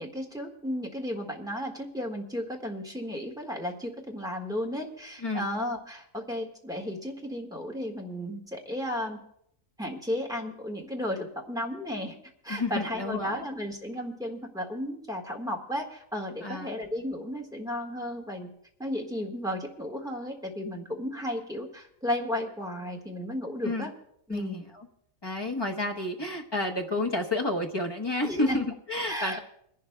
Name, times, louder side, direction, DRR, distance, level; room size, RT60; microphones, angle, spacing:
voice 1, 0.0-9.2 9.8-12.1 12.4-18.5 18.8-23.9 24.3-24.6 28.2-28.6 29.1-29.4, equal, 5° right, 0 dB, 1.5 m, -34 dB
voice 2, 12.5-13.4 16.4-16.7 23.6-23.9 24.3-24.9 25.2-29.4, left 2 dB, 20° left, 3 dB, 1.0 m, -30 dB
28.0 x 11.0 x 2.3 m, 0.71 s
omnidirectional pair, 1.4 m